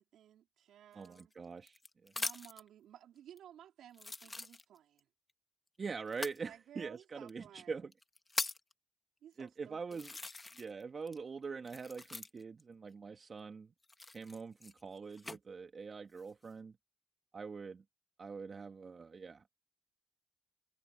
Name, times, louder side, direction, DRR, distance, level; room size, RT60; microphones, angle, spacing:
voice 1, 0.0-1.3 2.1-5.1 6.4-7.9 9.2-10.0, right 10 dB, 80° right, 4.3 m, -57 dB
voice 2, 0.9-2.1 5.8-7.9 9.4-10.1 10.5-13.7 14.1-16.7 17.3-17.8 18.2-19.5, right 5 dB, 50° right, 1.7 m, -44 dB
sound 1, 1.0-2.7 3.4-3.5 3.9-5.0 6.1-6.4 7.3-7.4 7.9-8.7 9.4-9.5 9.9-10.8 11.1-12.6 13.8-15.4 16.0-16.5, left 3 dB, 25° left, 1.6 m, -42 dB
supercardioid pair, 60°, 0 cm